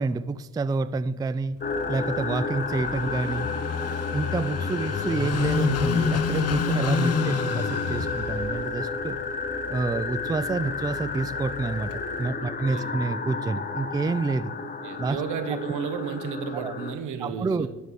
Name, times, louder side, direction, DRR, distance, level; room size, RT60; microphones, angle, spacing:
voice 1, 0.0-1.6 1.9-3.5 4.1-9.2 9.7-14.5 15.0-15.2 15.5-15.6 16.5-16.7 17.2-17.7, right 3 dB, 15° right, 15 dB, 0.3 m, -28 dB
Car passing by / Idling, 1.6-12.3, left 5 dB, 55° left, 0.8 m, -30 dB
sound 1, 1.6-16.9, left 3 dB, 30° left, 1.0 m, -32 dB
voice 2, 12.4-12.9 14.8-17.7, right 6 dB, 80° right, 9 dB, 1.1 m, -33 dB
11.0 x 4.6 x 6.9 m, 1.1 s
cardioid pair, 90°, 30 cm